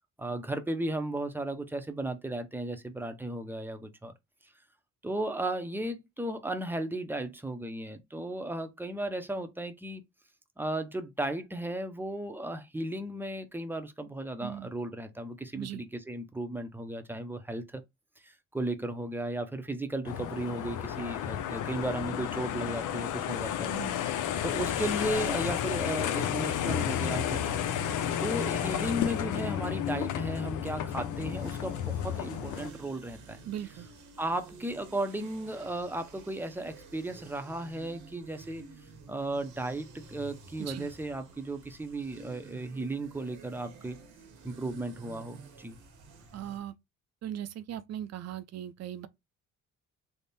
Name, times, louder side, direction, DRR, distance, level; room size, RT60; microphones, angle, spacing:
voice 1, 0.2-4.1 5.0-10.0 10.6-17.8 18.2-23.8 24.0-27.5 27.9-28.0 28.2-33.4 34.2-38.6 39.1-44.0 44.4-45.8, right 1 dB, 5° right, 0.6 m, -35 dB
voice 2, 14.4-14.7 15.5-15.8 23.7-24.0 33.5-33.9 40.6-40.9 46.3-46.7 47.2-49.1, right 11 dB, 60° right, 0.5 m, -39 dB
sound 1, 20.0-32.7, left 10 dB, 85° left, 0.6 m, -32 dB
sound 2, 30.9-46.6, right 4 dB, 80° right, 1.1 m, -51 dB
3.5 x 2.1 x 4.0 m
cardioid pair, 90°, 30 cm